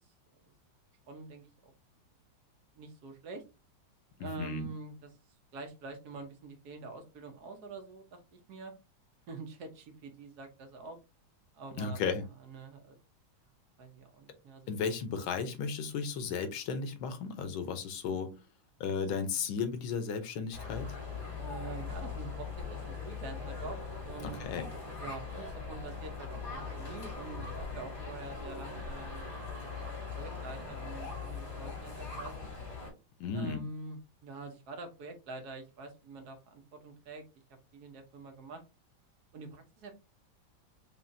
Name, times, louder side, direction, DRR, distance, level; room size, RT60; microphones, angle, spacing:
voice 1, 1.1-1.7 2.7-3.4 4.2-5.1 5.5-8.7 9.3-11.0 11.5-12.0 12.4-13.0 13.8-14.7 21.4-24.4 25.0-29.3 29.6-32.5 33.3-37.2 37.7-38.6 39.3-39.9, right 3 dB, 60° right, 5 dB, 1.3 m, -46 dB
voice 2, 4.2-4.7 11.8-12.2 14.7-18.3 18.8-21.0 24.2-24.7 33.2-33.6, left 5 dB, 90° left, 9 dB, 1.6 m, -34 dB
sound 1, 20.5-32.9, left 5 dB, 45° left, 3.0 m, -41 dB
5.3 x 2.7 x 2.6 m, 0.28 s
omnidirectional pair, 2.1 m